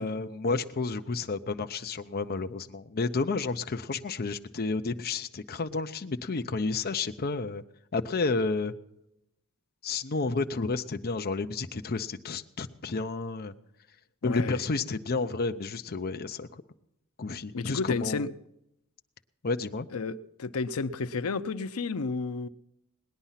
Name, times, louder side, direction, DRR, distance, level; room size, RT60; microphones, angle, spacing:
voice 1, 0.0-7.6 7.9-8.7 9.8-13.5 14.2-16.6 17.2-18.2 19.4-19.9, left 3 dB, 45° left, 0.7 m, -31 dB
voice 2, 14.2-14.6 17.5-18.3 19.9-22.5, left 4 dB, 80° left, 0.6 m, -32 dB
19.0 x 10.0 x 5.7 m
head